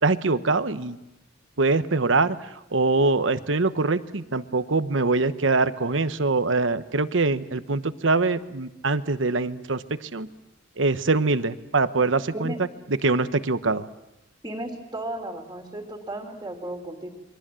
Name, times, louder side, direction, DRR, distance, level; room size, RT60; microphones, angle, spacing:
voice 1, 0.0-1.0 1.6-2.4 2.7-10.3 10.8-12.5 12.9-13.9, right 3 dB, 85° right, 12 dB, 1.1 m, -23 dB
voice 2, 14.4-17.1, right 1 dB, 20° right, 1 dB, 2.9 m, -34 dB
28.5 x 23.0 x 7.6 m, 0.95 s
head